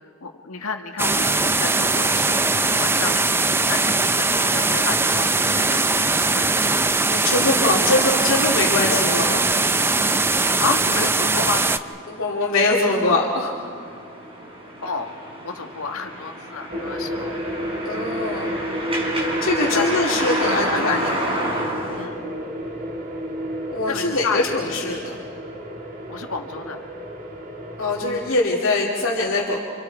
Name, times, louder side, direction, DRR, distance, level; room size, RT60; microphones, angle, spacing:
voice 1, 0.2-6.5 10.6-11.7 14.8-15.1 15.4-17.3 19.7-21.3 22.0-22.3 23.8-24.6 26.1-26.8, left 4 dB, 85° left, 4 dB, 1.8 m, -30 dB
sound 1, 1.0-11.8, right 3 dB, 10° right, 0.5 m, -20 dB
sound 2, 4.3-22.1, right 1 dB, 25° right, 4.4 m, -33 dB
voice 2, 7.1-9.7 12.1-13.5 17.8-18.5 19.4-21.1 23.7-25.2 27.8-29.6, left 2 dB, 65° left, -4 dB, 2.6 m, -22 dB
sound 3, 16.7-28.3, equal, 40° right, 2.9 m, -30 dB
28.5 x 27.5 x 4.6 m, 2.1 s
head